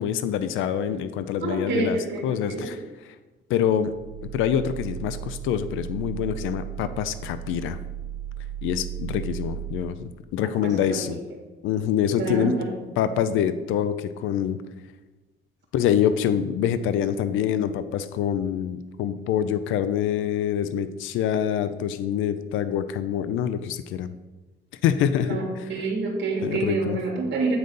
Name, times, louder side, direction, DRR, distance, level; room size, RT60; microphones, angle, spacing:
voice 1, 0.0-2.0 2.2-3.1 3.5-4.0 4.3-7.8 8.6-11.2 11.6-12.6 13.0-14.6 15.7-24.1 24.8-25.7 26.4-27.0, left 9 dB, 90° left, 12 dB, 0.4 m, -25 dB
voice 2, 1.4-2.7 10.6-10.7 12.1-12.7 25.3-27.6, right 3 dB, 60° right, 0 dB, 1.9 m, -27 dB
sound 1, 3.9-9.8, right 11 dB, 80° right, 1.2 m, -35 dB
7.9 x 3.9 x 5.3 m, 1.2 s
cardioid pair, 90°, 20 cm